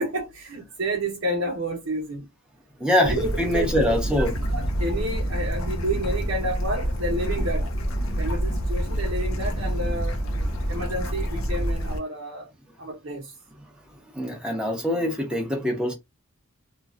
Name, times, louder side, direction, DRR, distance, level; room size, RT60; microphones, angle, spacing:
voice 1, 0.0-2.3 2.9-4.0 4.5-7.7 8.2-10.2 10.7-12.5 12.8-13.3, right 1 dB, 70° right, 1.0 m, -30 dB
voice 2, 2.8-4.3 10.7-10.8 14.1-15.9, left 1 dB, 5° right, 1.0 m, -24 dB
Bird / Stream, 3.0-12.0, equal, 75° left, 0.7 m, -27 dB
3.0 x 2.3 x 2.5 m
head